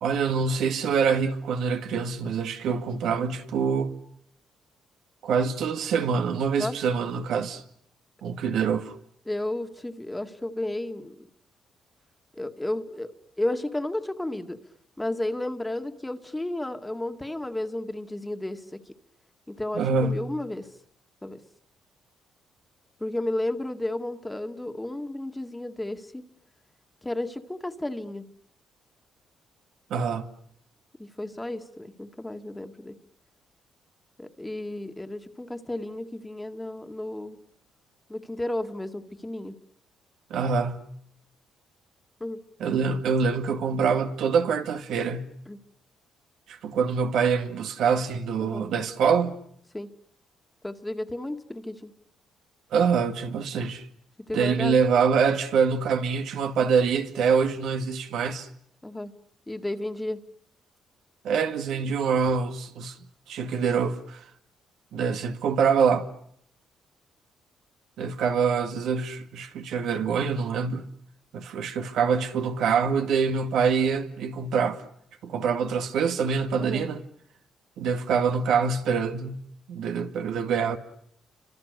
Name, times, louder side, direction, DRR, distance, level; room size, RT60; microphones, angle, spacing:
voice 1, 0.0-4.0 5.2-7.6 8.2-8.9 19.7-20.3 29.9-30.3 40.3-40.9 42.6-45.3 46.5-49.4 52.7-53.8 54.3-58.5 61.2-63.0 63.3-64.2 64.9-66.1 68.0-70.9 71.3-74.8 75.2-77.0 77.8-80.8, right 6 dB, 80° right, 2.0 m, -25 dB
voice 2, 9.3-11.3 12.3-13.1 13.4-14.6 15.0-18.8 19.5-20.7 21.2-21.4 23.0-26.3 27.0-28.3 31.0-33.0 34.2-37.4 38.1-39.6 42.2-42.4 45.5-45.6 48.4-48.7 49.7-49.9 50.6-51.9 54.3-54.7 58.8-59.1 59.5-60.2 76.6-76.9, left 1 dB, 10° left, 2.0 m, -32 dB
29.0 x 25.5 x 6.8 m
cardioid pair, 90°, 0 cm